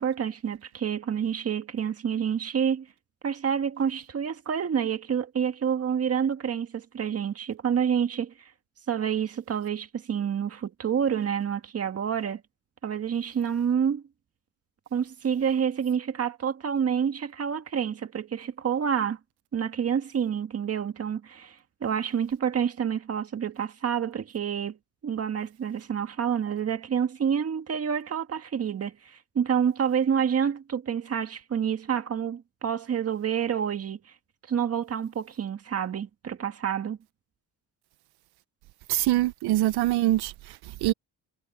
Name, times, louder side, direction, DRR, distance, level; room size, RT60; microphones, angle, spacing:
voice 1, 0.0-2.9 3.2-8.3 8.9-12.4 12.8-14.0 14.9-19.2 19.5-24.8 25.0-34.0 34.5-37.0, right 8 dB, 40° right, 1.7 m, -28 dB
voice 2, 38.9-40.9, right 16 dB, 85° right, 0.6 m, -24 dB
cardioid pair, 155°, 38 cm